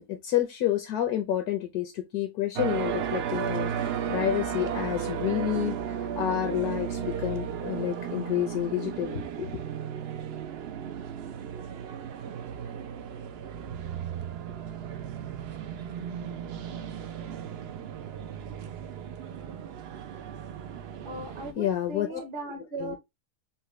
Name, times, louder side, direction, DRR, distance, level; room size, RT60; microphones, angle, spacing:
voice 1, 0.0-9.6 21.6-22.2 22.8-23.0, left 11 dB, 75° left, 1.1 m, -29 dB
sound 1, 2.6-21.5, right 8 dB, 80° right, 0.5 m, -35 dB
voice 2, 21.0-23.0, right 2 dB, 45° right, 0.8 m, -38 dB
5.6 x 2.2 x 3.0 m
omnidirectional pair, 1.6 m